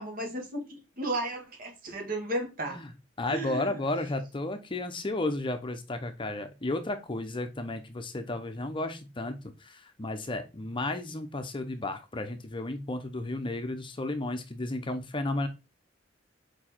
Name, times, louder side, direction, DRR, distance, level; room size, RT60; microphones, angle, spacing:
voice 1, 0.0-2.8 3.3-3.8, right 1 dB, 50° right, 1.9 m, -34 dB
voice 2, 3.2-15.5, left 2 dB, 25° left, 0.7 m, -33 dB
4.8 x 4.6 x 4.4 m
head